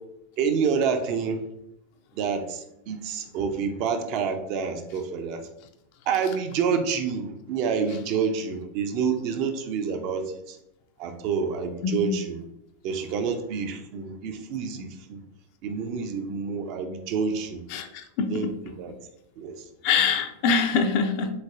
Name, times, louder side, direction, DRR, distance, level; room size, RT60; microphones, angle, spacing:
voice 1, 0.4-1.4 2.1-5.5 6.1-10.6 11.0-12.4 12.8-15.2 15.6-17.6 18.3-18.9 19.4-19.6, right 6 dB, 45° right, 7 dB, 0.4 m, -28 dB
voice 2, 11.8-12.2 17.7-18.3 19.8-21.3, left 5 dB, 45° left, 6 dB, 0.4 m, -24 dB
3.8 x 3.2 x 2.4 m, 0.83 s
figure-of-eight pair, 90°, 0 cm